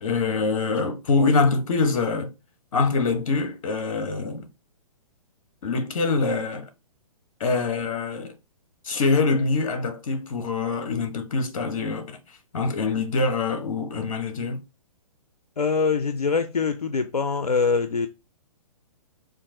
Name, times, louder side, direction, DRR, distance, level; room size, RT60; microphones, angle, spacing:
voice 1, 0.0-2.3 2.7-4.5 5.6-6.7 7.4-8.3 8.8-12.2 12.5-14.6, left 4 dB, 60° left, 0.9 m, -24 dB
voice 2, 15.6-18.1, left 5 dB, 85° left, 0.4 m, -23 dB
3.8 x 2.5 x 3.7 m
figure-of-eight pair, 120°, 19 cm